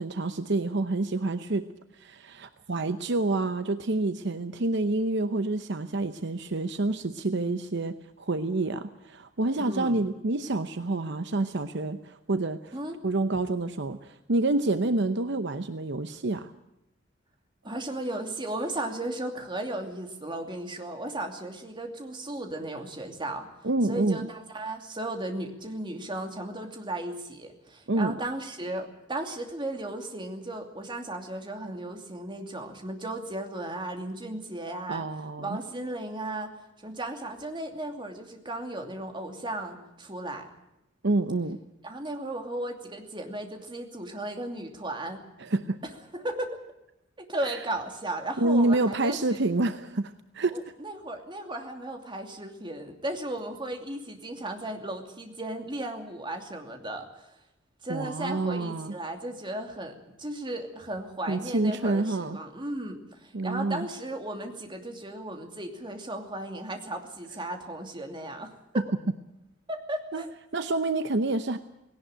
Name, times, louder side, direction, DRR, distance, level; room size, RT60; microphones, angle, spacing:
voice 1, 0.0-1.7 1.9-12.7 13.0-16.5 23.6-24.3 27.9-28.2 34.9-35.6 41.0-41.6 45.4-45.8 47.4-47.6 48.4-50.6 57.9-58.9 61.3-62.4 63.3-63.9 70.1-70.2 70.5-71.6, right 2 dB, 65° right, 10 dB, 0.9 m, -28 dB
voice 2, 9.6-10.1 12.7-13.0 17.6-23.5 23.9-35.1 35.4-36.5 36.8-40.5 41.8-45.2 46.1-46.6 47.2-49.4 50.5-57.3 57.8-68.8 69.7-70.3, right 1 dB, 25° right, 4 dB, 2.7 m, -35 dB
18.5 x 18.0 x 9.0 m, 0.88 s
head